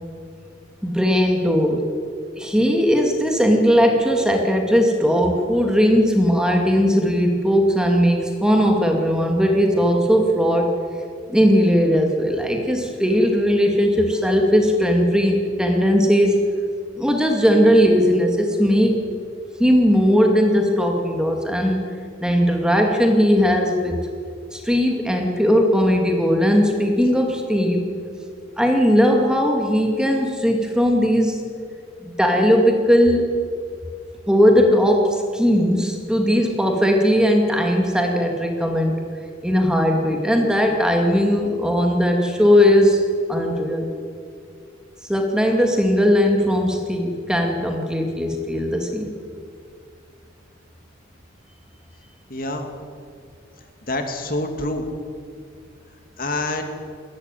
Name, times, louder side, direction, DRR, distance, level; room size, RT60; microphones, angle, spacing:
voice 1, 0.8-1.9 2.4-10.7 11.3-16.4 16.9-18.9 19.6-21.9 22.2-24.0 24.5-27.9 28.6-31.4 32.0-33.4 34.3-39.0 39.4-43.0 43.3-43.9 45.1-49.1, equal, 5° right, 2 dB, 2.3 m, -18 dB
voice 2, 52.3-52.7 53.9-54.9 56.2-56.6, left 2 dB, 45° left, 5 dB, 2.4 m, -26 dB
20.5 x 17.0 x 9.3 m, 2.2 s
head